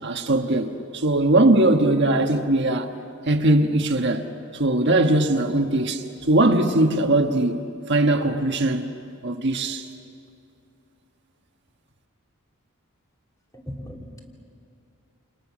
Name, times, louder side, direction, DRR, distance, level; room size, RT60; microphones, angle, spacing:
voice 1, 0.0-2.9 3.3-4.3 4.5-7.6 7.9-8.8 9.2-9.9, right 2 dB, 50° right, 1.4 m, -20 dB
voice 2, 13.5-14.2, equal, 15° left, 2.9 m, -37 dB
29.0 x 29.0 x 6.3 m
head